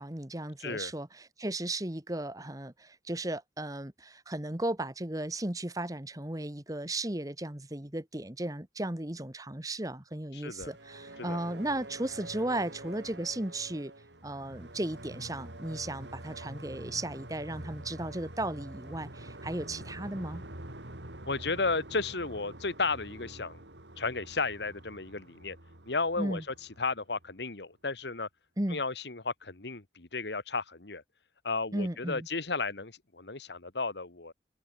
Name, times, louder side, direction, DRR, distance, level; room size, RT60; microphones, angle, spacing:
voice 1, 0.0-13.9 14.2-20.4 26.2-26.4 28.6-28.8 31.7-32.3, right 1 dB, 20° right, 1.5 m, -35 dB
voice 2, 0.6-0.9 10.3-10.7 11.2-11.4 21.3-23.6 24.0-25.6 25.9-26.4 26.8-28.3 28.7-31.0 31.4-34.3, left 3 dB, 75° left, 1.7 m, -33 dB
sound 1, 10.6-27.4, right 1 dB, 85° right, 4.4 m, -46 dB
head